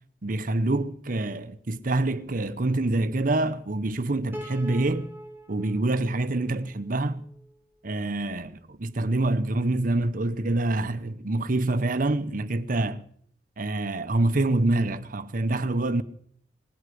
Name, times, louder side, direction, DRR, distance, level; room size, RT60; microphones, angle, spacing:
voice 1, 0.2-5.1 5.5-7.2 7.8-13.0 13.6-16.0, right 2 dB, 50° right, 0.8 m, -26 dB
Piano, 4.3-7.6, equal, 10° right, 1.5 m, -43 dB
19.5 x 8.3 x 7.7 m
head